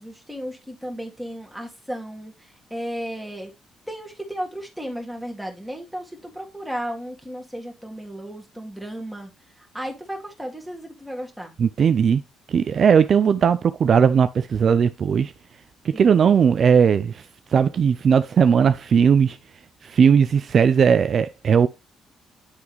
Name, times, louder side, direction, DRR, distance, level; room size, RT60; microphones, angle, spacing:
voice 1, 0.0-3.5 3.9-9.3 9.6-11.5 15.9-16.5, equal, ahead, 1.8 m, -34 dB
voice 2, 11.6-12.2 12.5-15.3 15.8-17.2 17.5-19.4 19.8-21.7, right 7 dB, 55° right, 0.3 m, -18 dB
9.7 x 3.5 x 3.0 m
cardioid pair, 90°, 0 cm